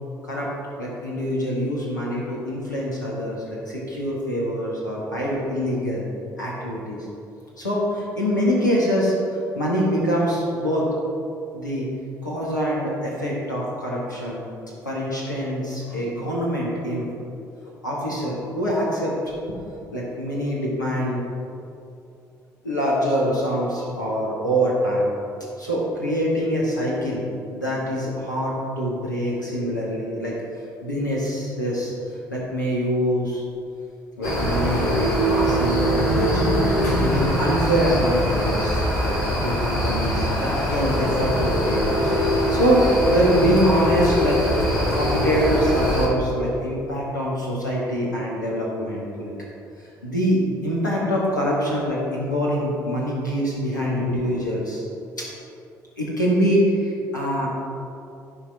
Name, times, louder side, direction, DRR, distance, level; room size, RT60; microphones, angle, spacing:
voice 1, 0.8-6.1 6.4-7.1 7.6-9.1 9.5-10.9 11.5-11.9 12.2-14.4 14.8-17.1 17.8-19.1 19.5-19.6 19.9-21.2 22.6-25.1 25.6-27.2 27.5-30.4 30.8-31.9 32.3-33.4 34.2-39.2 39.4-41.8 42.3-44.4 44.9-49.3 50.0-54.8 55.2-55.3 56.0-57.6, equal, 85° left, -5 dB, 1.8 m, -24 dB
sound 1, 34.2-46.1, equal, 70° left, 2.0 m, -22 dB
12.5 x 5.7 x 4.8 m, 2.6 s
figure-of-eight pair, 45°, 10 cm